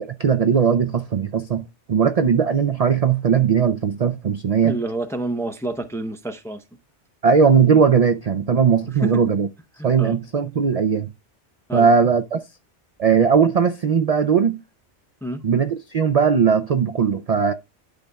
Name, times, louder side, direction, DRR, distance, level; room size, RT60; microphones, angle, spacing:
voice 1, 0.0-4.8 7.2-9.5 9.8-11.1 11.7-12.4 13.0-14.6 15.4-17.5, right 6 dB, 55° right, 0.4 m, -18 dB
voice 2, 4.6-6.6 8.9-9.2 9.8-10.2 11.7-11.9 15.2-15.4, right 1 dB, 5° left, 0.4 m, -28 dB
12.0 x 5.3 x 2.2 m
omnidirectional pair, 1.2 m